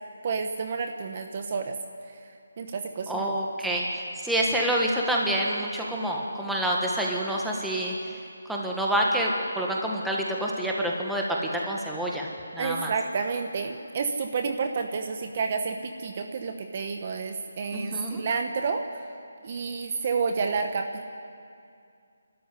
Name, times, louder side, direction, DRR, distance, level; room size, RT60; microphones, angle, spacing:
voice 1, 0.2-1.7 2.6-3.3 12.6-18.8 19.4-20.8, right 5 dB, 30° right, 5 dB, 1.1 m, -30 dB
voice 2, 3.1-3.9 4.2-7.9 8.5-12.3 12.5-12.9 17.7-18.2, right 1 dB, ahead, -3 dB, 1.5 m, -27 dB
29.5 x 13.0 x 9.8 m, 2.4 s
hypercardioid pair, 175°, 0 cm